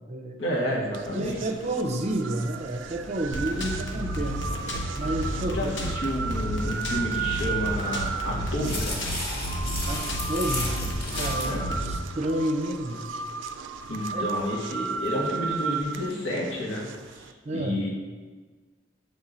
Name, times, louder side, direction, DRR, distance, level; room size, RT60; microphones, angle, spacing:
voice 1, 0.4-1.4 5.5-8.9 11.4-11.7 13.9-16.8 17.1-17.9, left 1 dB, 85° left, -4 dB, 1.5 m, -30 dB
sound 1, 0.9-17.3, right 5 dB, 90° right, 0.4 m, -35 dB
voice 2, 1.1-4.4 5.0-5.7 9.9-13.1 14.1-14.3 17.5-17.9, right 1 dB, 35° right, 4 dB, 0.5 m, -30 dB
sound 2, 3.3-12.0, equal, 70° left, 0.9 m, -32 dB
sound 3, 8.0-11.6, left 1 dB, 30° left, 1.3 m, -34 dB
7.5 x 3.6 x 3.9 m, 1.4 s
head